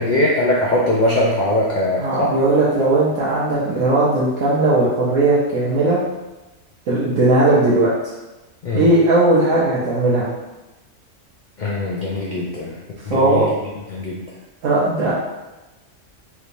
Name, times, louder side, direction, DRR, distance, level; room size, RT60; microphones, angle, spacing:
voice 1, 0.0-2.3 8.6-8.9 11.6-12.8 13.1-13.5 13.9-14.2, left 1 dB, 80° left, -4 dB, 0.4 m, -20 dB
voice 2, 2.0-6.0 6.9-7.9 8.7-10.3 13.1-13.5 14.6-15.1, right 2 dB, 90° right, -9 dB, 1.1 m, -17 dB
3.3 x 2.9 x 2.6 m, 1.1 s
omnidirectional pair, 1.4 m